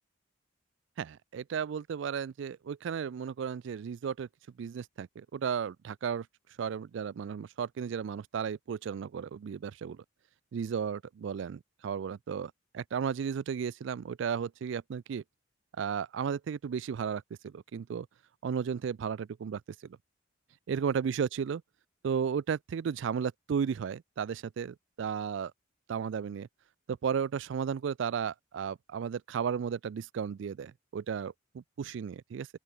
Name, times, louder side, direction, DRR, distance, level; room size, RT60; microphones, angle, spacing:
voice 1, 1.0-4.3 4.6-6.3 6.6-10.0 10.5-15.2 15.8-18.1 18.4-20.0 20.7-21.6 22.0-25.5 25.9-26.5 26.9-32.5, right 7 dB, 60° right, 0.3 m, -34 dB
open air
head